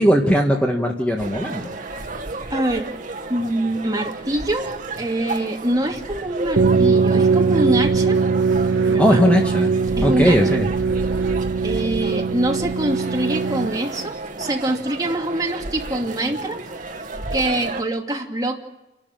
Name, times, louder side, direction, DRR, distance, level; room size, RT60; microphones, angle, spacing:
voice 1, 0.0-1.7 9.0-9.7 10.0-10.7, equal, 5° left, 1 dB, 1.8 m, -18 dB
sound 1, 1.2-17.8, right 2 dB, 45° right, 1.7 m, -32 dB
voice 2, 2.5-2.9 3.3-8.2 8.9-9.2 10.0-10.4 11.6-16.6 17.3-18.6, right 1 dB, 20° right, 0 dB, 2.7 m, -24 dB
sound 2, 6.6-14.0, right 4 dB, 80° right, 0.8 m, -20 dB
29.5 x 12.5 x 9.2 m, 0.99 s
head